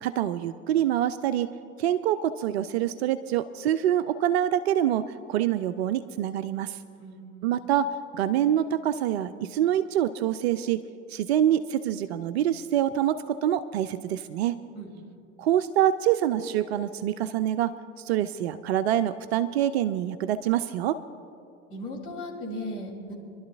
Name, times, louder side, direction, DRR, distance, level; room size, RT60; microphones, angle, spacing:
voice 1, 0.0-1.5 1.8-6.8 7.4-10.8 11.1-14.6 15.4-21.0, right 11 dB, 50° right, 12 dB, 0.5 m, -26 dB
voice 2, 7.0-7.6 14.7-14.9 21.7-23.1, left 1 dB, 30° left, -1 dB, 3.5 m, -37 dB
27.0 x 11.5 x 2.6 m, 2.4 s
figure-of-eight pair, 80°, 42 cm